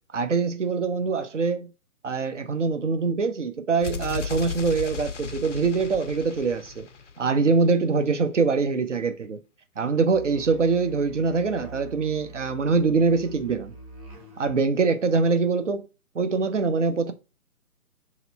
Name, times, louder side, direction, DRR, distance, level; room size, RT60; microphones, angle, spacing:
voice 1, 0.1-1.7 2.0-6.9 7.2-9.4 9.8-13.7 14.4-15.9 16.1-17.1, right 4 dB, 55° right, 0.7 m, -24 dB
sound 1, 3.8-7.7, left 6 dB, 55° left, 0.5 m, -36 dB
Musical instrument, 10.1-14.6, right 1 dB, 25° right, 1.0 m, -44 dB
3.0 x 2.9 x 4.1 m
figure-of-eight pair, 145°, 45 cm